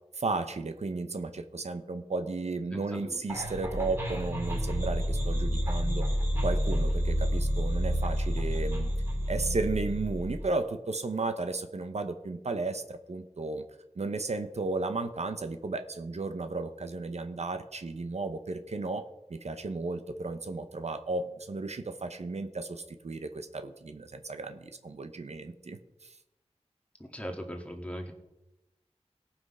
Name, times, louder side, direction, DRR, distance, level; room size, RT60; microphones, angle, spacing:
voice 1, 0.1-6.1 6.4-8.9 9.3-13.6 14.0-26.2, right 3 dB, 75° right, 8 dB, 0.9 m, -34 dB
voice 2, 2.7-3.2 27.1-28.1, equal, 10° left, 3 dB, 2.1 m, -39 dB
sound 1, 3.3-10.5, equal, 20° right, 3.1 m, -29 dB
18.0 x 6.0 x 5.6 m, 0.95 s
wide cardioid pair, 65°, 11 cm